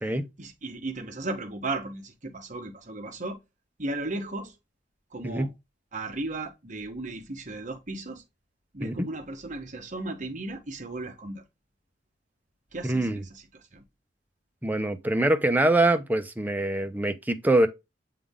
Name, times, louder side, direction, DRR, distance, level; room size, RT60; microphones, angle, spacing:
voice 1, 0.4-3.4 3.8-4.6 5.1-5.5 5.9-8.2 8.7-11.4 12.7-13.8, right 2 dB, 45° right, 1.3 m, -35 dB
voice 2, 12.8-13.2 14.6-17.7, right 1 dB, 10° right, 0.8 m, -24 dB
8.3 x 3.7 x 3.7 m
head